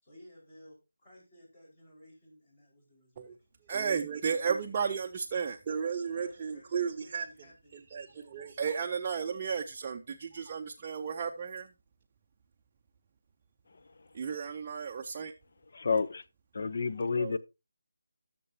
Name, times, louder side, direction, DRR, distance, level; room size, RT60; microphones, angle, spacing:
voice 1, 0.0-3.9 4.2-4.7 5.0-5.1 6.1-8.7 17.2-17.3, equal, 25° left, 4.7 m, -57 dB
voice 2, 3.7-7.3 7.9-11.7 14.1-15.3 17.2-17.4, right 6 dB, 25° right, 0.5 m, -33 dB
voice 3, 15.7-16.2 16.5-17.4, left 4 dB, 50° left, 0.6 m, -29 dB
16.5 x 6.8 x 2.7 m
figure-of-eight pair, 170°, 0 cm